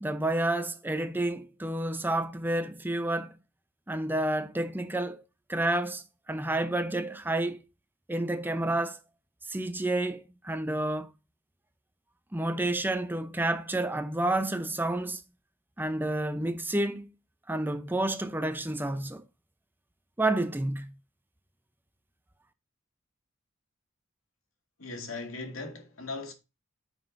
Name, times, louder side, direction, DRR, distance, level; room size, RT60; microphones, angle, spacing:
voice 1, 0.0-3.3 3.9-5.2 5.5-7.6 8.1-9.0 9.5-11.1 12.3-15.2 15.8-17.1 17.5-19.2 20.2-20.9, right 1 dB, 10° right, 0.6 m, -30 dB
voice 2, 24.8-26.3, left 3 dB, 80° left, 2.0 m, -38 dB
9.3 x 6.2 x 2.6 m
head